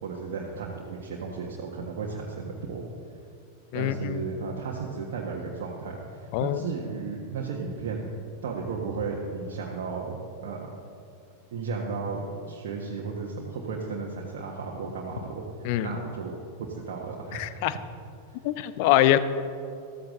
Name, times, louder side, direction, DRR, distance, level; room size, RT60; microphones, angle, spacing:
voice 1, 0.0-2.8 3.7-8.1 8.4-10.2 10.4-10.7 11.5-17.6, right 4 dB, 55° right, -3 dB, 1.5 m, -34 dB
voice 2, 3.7-4.2 6.3-6.6 15.6-15.9 17.3-17.8 18.4-19.2, left 13 dB, 45° left, 13 dB, 0.6 m, -24 dB
14.5 x 14.0 x 3.8 m, 2.5 s
figure-of-eight pair, 90°, 0 cm